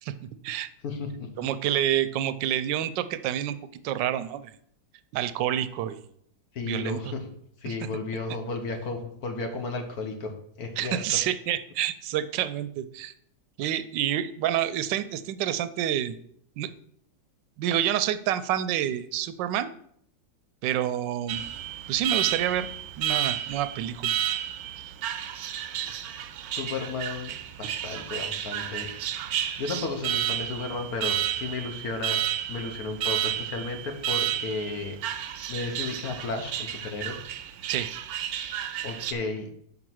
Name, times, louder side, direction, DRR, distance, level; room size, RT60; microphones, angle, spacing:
voice 1, 0.8-1.5 6.5-7.3 7.6-11.0 26.5-28.9 29.6-32.2 32.5-35.0 35.5-37.2 38.8-39.5, left 3 dB, 60° left, 5 dB, 1.5 m, -33 dB
voice 2, 1.4-3.6 3.8-4.5 5.1-6.0 6.6-7.0 7.7-7.8 10.8-13.1 13.6-16.1 16.6-16.7 17.6-19.7 20.6-21.4 21.9-22.7 23.0-24.1 37.7-37.9, right 11 dB, 85° right, 13 dB, 1.2 m, -28 dB
Alarm, 21.3-39.1, right 10 dB, 70° right, 0.9 m, -31 dB
5.6 x 4.9 x 6.2 m, 0.67 s
omnidirectional pair, 1.9 m